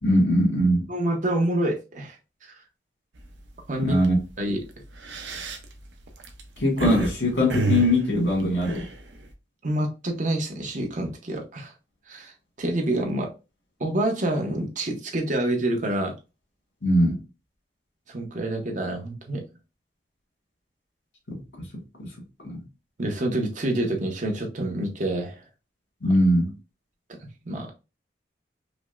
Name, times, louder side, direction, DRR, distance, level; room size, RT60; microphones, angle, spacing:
voice 1, 0.0-0.9 3.8-4.2 6.6-8.8 16.8-17.2 21.3-21.4 22.4-22.6 26.0-26.5, equal, 85° left, 1.9 m, -21 dB
voice 2, 0.9-2.2 3.7-4.0 4.4-4.6 9.6-11.7 12.1-12.3 12.6-13.3 13.8-16.1 18.1-19.4 23.0-25.4 27.4-27.7, right 1 dB, 45° right, 0.8 m, -27 dB
sound 1, 3.2-3.5 3.9-4.1 4.8-7.1 7.5-9.3, right 3 dB, 85° right, 0.7 m, -29 dB
5.1 x 2.0 x 2.4 m
head